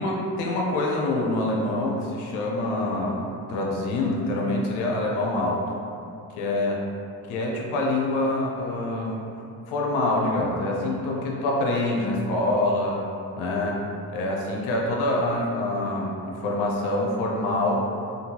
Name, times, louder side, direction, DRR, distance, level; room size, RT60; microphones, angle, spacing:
voice 1, 0.0-5.6 6.4-6.8 7.3-9.2 9.7-13.0 13.3-13.8 14.1-17.9, left 2 dB, 85° left, -2 dB, 0.6 m, -25 dB
3.7 x 2.3 x 2.8 m, 2.6 s
supercardioid pair, 60°, 48 cm